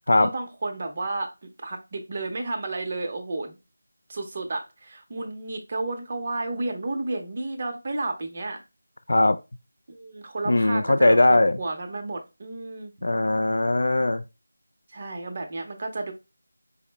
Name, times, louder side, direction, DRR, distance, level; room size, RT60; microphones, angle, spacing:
voice 1, 0.1-1.3 1.6-3.6 4.1-8.6 9.9-12.9 14.9-16.1, right 2 dB, 30° right, 0.7 m, -32 dB
voice 2, 10.5-11.6 13.0-14.2, left 2 dB, 65° left, 0.3 m, -20 dB
4.9 x 2.0 x 3.3 m
figure-of-eight pair, 175°, 0 cm